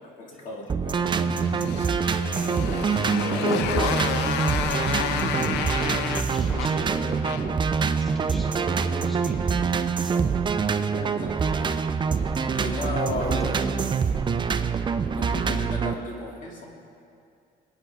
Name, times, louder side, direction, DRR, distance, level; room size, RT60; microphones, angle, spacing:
voice 1, 0.2-1.2 2.6-3.7 10.9-11.7 12.5-13.6 15.1-16.7, left 2 dB, 50° left, -2 dB, 2.6 m, -35 dB
sound 1, 0.7-15.9, right 6 dB, 30° right, 0.5 m, -25 dB
voice 2, 1.1-1.7 3.4-3.7 5.3-7.4 8.0-9.7 10.0-10.3 13.2-14.0, right 1 dB, ahead, -3 dB, 1.9 m, -37 dB
Motorcycle, 1.3-7.7, left 8 dB, 85° left, 0.7 m, -30 dB
22.0 x 9.2 x 3.6 m, 2.4 s
cardioid pair, 110°, 17 cm